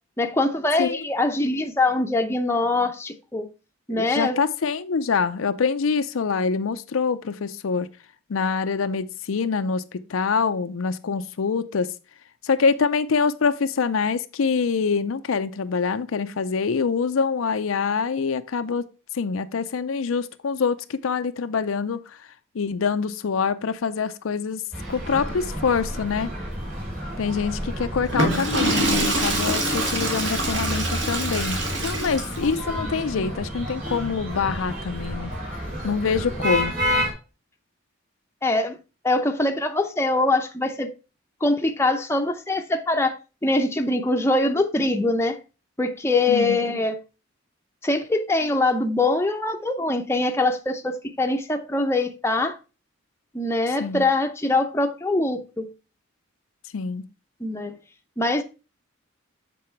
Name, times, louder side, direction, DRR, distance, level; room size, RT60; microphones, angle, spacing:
voice 1, 0.2-3.5 3.9-4.4 38.4-38.8 39.0-40.9 41.4-45.4 45.8-47.0 47.8-52.6 53.3-55.7 57.4-57.8 58.2-58.4, left 2 dB, 10° left, 0.7 m, -23 dB
voice 2, 3.9-7.9 8.3-11.9 12.4-18.9 19.1-22.2 22.5-24.6 24.9-26.3 27.2-35.3 35.8-36.8 46.3-46.8 53.8-54.1 56.7-57.1, left 5 dB, 85° left, 0.5 m, -25 dB
sound 1, 24.7-37.1, equal, 40° right, 3.6 m, -30 dB
Water / Toilet flush, 28.0-32.5, right 1 dB, 60° right, 2.0 m, -25 dB
7.7 x 4.3 x 4.4 m
head